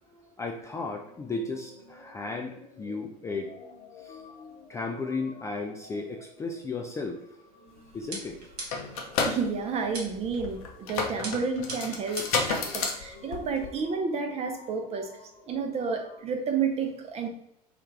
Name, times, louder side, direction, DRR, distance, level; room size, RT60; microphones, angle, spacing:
voice 1, 0.1-3.5 4.0-4.2 4.7-7.2 7.9-8.4, left 3 dB, 15° left, 1 dB, 0.3 m, -35 dB
sound 1, 0.6-16.2, left 3 dB, 35° left, 0.9 m, -52 dB
sound 2, 8.0-8.1 8.3-13.9, left 4 dB, 60° left, 0.6 m, -31 dB
sound 3, 8.1-9.0 9.9-10.4 11.2-12.5, right 2 dB, 70° right, 1.0 m, -39 dB
voice 2, 8.9-15.1 15.5-17.3, right 5 dB, 30° right, 4 dB, 0.6 m, -31 dB
3.3 x 2.4 x 3.1 m, 0.78 s
figure-of-eight pair, 70°, 21 cm